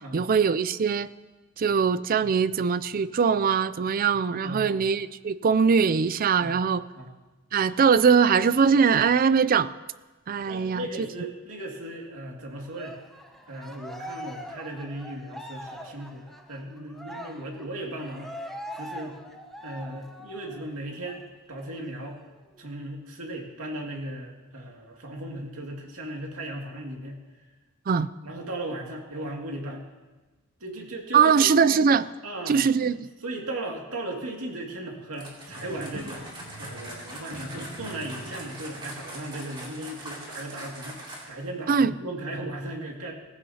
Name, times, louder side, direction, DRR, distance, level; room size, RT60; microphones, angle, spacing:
voice 1, 0.1-1.1 1.6-6.8 7.5-9.7 10.3-11.1 27.9-28.1 31.1-32.1 32.5-33.1 41.7-41.9, right 6 dB, 40° right, 16 dB, 0.4 m, -22 dB
voice 2, 4.4-4.8 6.4-6.6 6.9-7.1 10.4-13.0 13.5-18.3 18.7-19.2 19.6-21.2 21.5-22.2 22.6-27.2 28.2-29.9 30.6-31.5 32.2-32.7 33.2-36.3 36.6-41.0 41.3-43.1, right 1 dB, 80° right, 0 dB, 2.3 m, -37 dB
Cheering, 12.7-20.7 21.0-21.2 21.6-22.6, equal, ahead, 0.8 m, -42 dB
sound 1, 35.1-41.5, right 1 dB, 25° right, 2.7 m, -42 dB
sound 2, 35.5-40.4, right 1 dB, 85° left, 2.3 m, -46 dB
17.5 x 15.5 x 2.8 m, 1.2 s
head